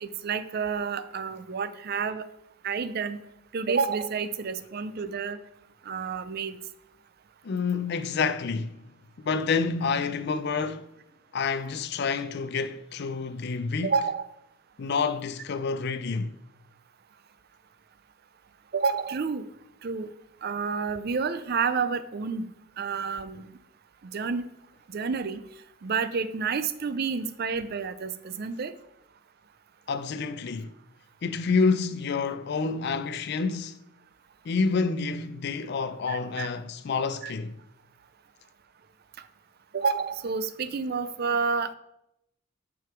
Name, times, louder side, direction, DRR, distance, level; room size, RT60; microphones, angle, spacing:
voice 1, 0.0-2.3 2.6-3.2 3.5-5.4 5.9-6.6 13.8-14.3 18.7-19.4 19.8-20.1 20.4-22.5 22.8-23.5 24.0-24.4 24.9-25.4 25.8-28.7 36.1-36.5 37.2-37.3 39.7-41.7, right 5 dB, 50° right, 0.5 m, -29 dB
voice 2, 7.4-8.8 9.2-10.9 11.3-13.9 14.8-16.4 29.9-30.7 31.2-33.8 34.4-37.6, left 4 dB, 55° left, 0.4 m, -28 dB
7.8 x 5.1 x 4.5 m
head